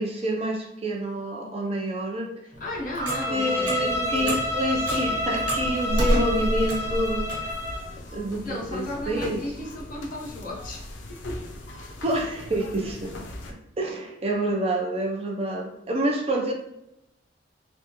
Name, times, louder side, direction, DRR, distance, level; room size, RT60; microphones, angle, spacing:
voice 1, 0.0-2.3 3.0-7.5 8.1-9.4 12.0-13.1 13.8-16.5, right 1 dB, 35° right, 0 dB, 0.5 m, -28 dB
Clock, 2.5-7.5, equal, 80° right, 1.1 m, -29 dB
voice 2, 2.6-4.5 8.4-11.4, left 1 dB, 50° left, -3 dB, 0.8 m, -34 dB
Bowed string instrument, 3.0-7.9, left 1 dB, 15° left, 0.5 m, -29 dB
sound 1, 3.8-13.5, left 1 dB, 90° left, 0.5 m, -40 dB
3.4 x 2.4 x 2.9 m, 0.83 s
head